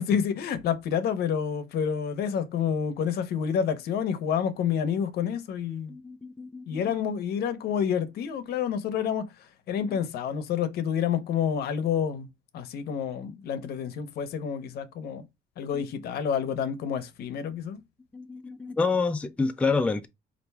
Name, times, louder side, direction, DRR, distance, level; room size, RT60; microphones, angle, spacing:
voice 1, 0.0-5.9 6.7-9.3 9.7-12.3 12.5-15.2 15.6-17.8, left 8 dB, 70° left, 0.7 m, -28 dB
voice 2, 5.9-6.8 9.9-10.0 15.7-15.8 18.1-20.1, left 4 dB, 5° left, 0.3 m, -28 dB
4.4 x 2.5 x 3.3 m
cardioid pair, 110°, 17 cm